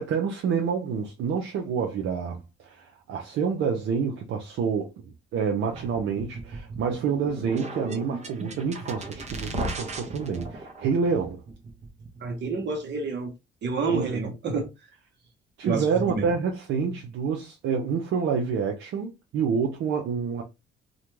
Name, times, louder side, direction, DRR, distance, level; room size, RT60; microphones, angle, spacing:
voice 1, 0.0-11.4 13.9-14.3 15.6-20.4, right 6 dB, 80° right, 0.6 m, -28 dB
sound 1, 5.7-12.5, right 2 dB, 35° right, 0.7 m, -37 dB
voice 2, 12.2-13.3 13.6-14.7 15.6-16.3, right 4 dB, 60° right, 0.9 m, -29 dB
2.4 x 2.2 x 3.0 m
cardioid pair, 90°, 20 cm